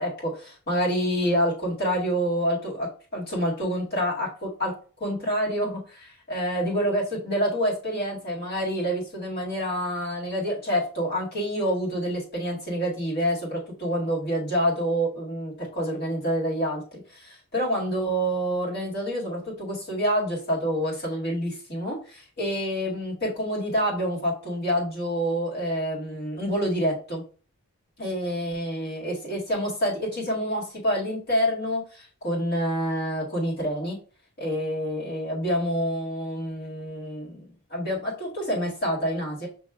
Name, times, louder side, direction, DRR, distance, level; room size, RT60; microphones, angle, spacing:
voice 1, 0.0-4.7 5.0-27.2 28.0-34.0 34.4-39.5, equal, 45° left, -5 dB, 2.1 m, -27 dB
6.3 x 2.9 x 2.4 m, 0.39 s
head